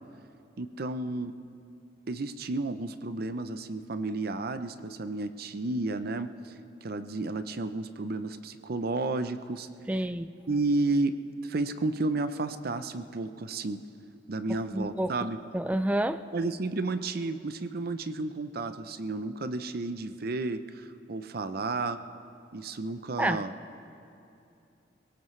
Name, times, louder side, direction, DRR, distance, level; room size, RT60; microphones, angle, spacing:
voice 1, 0.6-1.3 2.1-6.5 6.8-9.7 10.5-11.2 11.4-13.8 14.3-15.4 16.3-22.0 22.5-23.5, right 2 dB, 55° right, 11 dB, 0.6 m, -32 dB
voice 2, 9.9-10.3 14.5-15.1 15.5-16.2 23.2-23.4, right 1 dB, 10° right, 12 dB, 0.4 m, -29 dB
22.0 x 17.5 x 3.3 m, 2.7 s
head